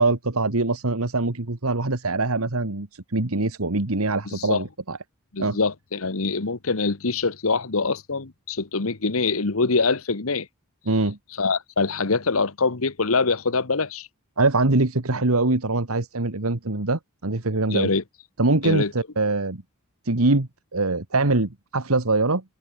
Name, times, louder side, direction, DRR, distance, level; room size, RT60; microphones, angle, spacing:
voice 1, 0.0-5.0 5.4-5.6 10.9-11.2 14.4-17.9 18.4-19.6 20.0-22.4, right 2 dB, 80° right, 1.8 m, -23 dB
voice 2, 4.3-4.6 5.3-10.5 11.4-14.1 17.7-18.0 18.6-18.9, left 4 dB, 70° left, 1.3 m, -24 dB
head